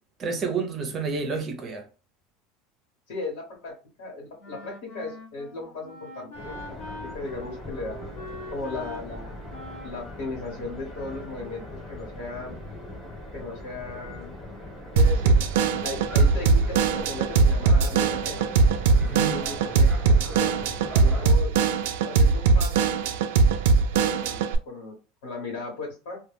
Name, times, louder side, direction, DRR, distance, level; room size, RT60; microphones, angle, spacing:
voice 1, 0.2-1.8 19.0-19.4, right 4 dB, 25° right, 0.5 m, -29 dB
voice 2, 3.1-7.9 8.5-9.3 9.8-12.5 13.3-14.3 14.9-15.3 15.8-16.6 16.9-18.3 19.3-20.5 21.0-21.6 22.0-22.9 24.0-24.4 24.7-24.9 25.2-26.2, left 3 dB, 85° left, 1.1 m, -36 dB
Wind instrument woodwind instrument, 4.4-11.5, left 1 dB, 60° left, 0.7 m, -43 dB
sound 1, 6.3-21.3, left 1 dB, 10° left, 0.9 m, -40 dB
Drum kit / Drum, 15.0-24.6, right 4 dB, 90° right, 0.3 m, -21 dB
2.1 x 2.1 x 3.3 m
cardioid pair, 175°, 0 cm